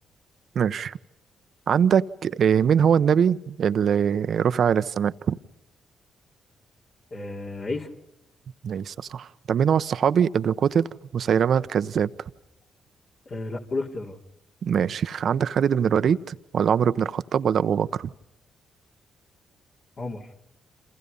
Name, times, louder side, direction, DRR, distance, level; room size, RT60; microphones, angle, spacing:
voice 1, 0.5-1.0 1.7-5.4 8.6-12.1 14.6-18.1, right 8 dB, 65° right, 14 dB, 0.9 m, -22 dB
voice 2, 7.1-7.9 13.3-14.2 20.0-20.3, left 2 dB, 55° left, 0 dB, 3.8 m, -32 dB
29.5 x 27.5 x 5.5 m, 0.84 s
supercardioid pair, 55°, 0 cm